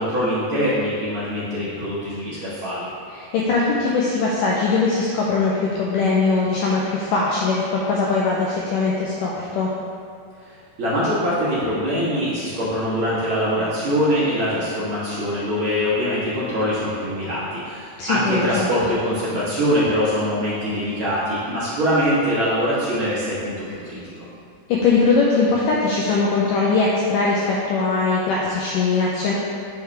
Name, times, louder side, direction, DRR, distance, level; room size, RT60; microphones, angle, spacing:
voice 1, 0.0-2.9 10.8-23.5 23.8-24.1, equal, 60° right, -10 dB, 1.4 m, -23 dB
voice 2, 3.1-9.7 18.0-18.7 24.7-29.3, left 4 dB, 85° left, -4 dB, 1.8 m, -21 dB
8.1 x 4.8 x 3.3 m, 2.3 s
omnidirectional pair, 4.4 m